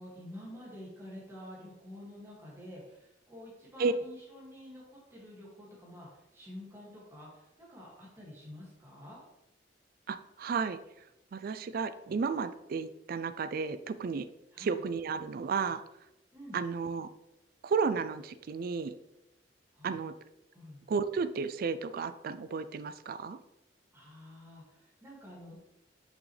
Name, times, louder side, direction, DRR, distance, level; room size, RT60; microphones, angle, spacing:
voice 1, 0.0-9.2 14.5-14.8 16.3-16.6 19.7-20.0 20.5-20.9 23.9-25.5, left 1 dB, 15° right, -6 dB, 2.1 m, -49 dB
voice 2, 10.1-10.8 11.3-14.3 14.6-15.8 16.5-17.1 17.6-18.9 19.8-20.1 20.9-23.4, right 5 dB, 55° right, 13 dB, 0.4 m, -33 dB
6.2 x 6.2 x 3.3 m, 0.91 s
head